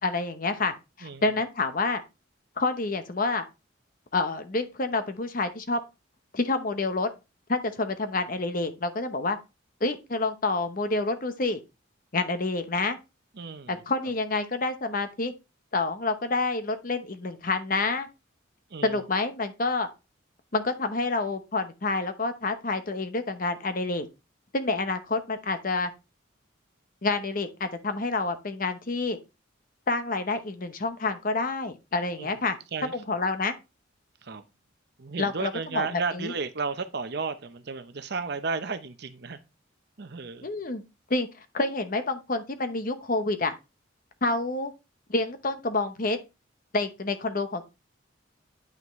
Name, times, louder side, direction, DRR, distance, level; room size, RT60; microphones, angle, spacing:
voice 1, 0.0-2.0 2.6-3.4 4.1-5.8 6.3-7.1 7.5-9.4 9.8-11.6 12.1-13.0 13.7-15.3 15.7-18.1 18.8-19.9 20.5-24.1 24.5-25.9 27.0-29.2 29.9-32.6 32.8-33.5 35.2-36.3 40.4-40.8 41.1-41.3 41.5-43.5 44.2-44.7 45.1-46.2 46.7-47.6, left 3 dB, 45° left, 0.9 m, -28 dB
voice 2, 13.4-13.8 18.7-19.0 32.2-32.3 32.7-32.9 34.2-34.4 35.0-39.4 40.0-40.5, right 4 dB, 55° right, 0.7 m, -33 dB
9.1 x 5.8 x 3.1 m
head